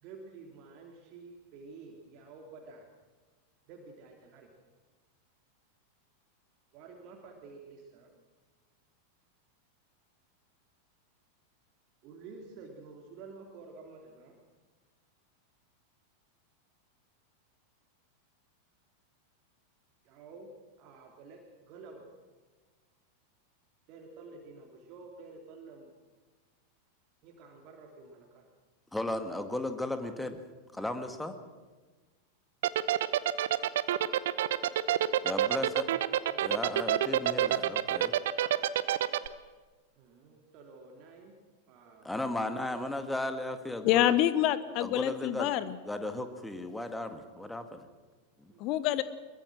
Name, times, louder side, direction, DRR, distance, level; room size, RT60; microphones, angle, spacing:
voice 1, 0.0-2.9 3.7-4.5 6.7-8.1 12.0-14.3 20.0-20.5 20.8-22.0 23.9-25.9 27.2-28.5 30.0-30.1 36.1-36.7 40.0-41.3 41.7-42.1 48.5-48.7, right 4 dB, 40° right, 1 dB, 3.2 m, -50 dB
voice 2, 28.9-30.4 30.7-31.3 35.2-35.9 36.4-38.1 42.0-44.1 44.8-45.5 45.8-47.9 48.4-48.5, left 1 dB, 5° left, 8 dB, 2.0 m, -35 dB
sound 1, 32.6-39.3, right 12 dB, 55° right, 0.9 m, -27 dB
voice 3, 43.8-45.8 48.6-49.0, left 12 dB, 40° left, 14 dB, 1.2 m, -27 dB
22.5 x 22.0 x 6.3 m, 1.3 s
figure-of-eight pair, 90°, 0 cm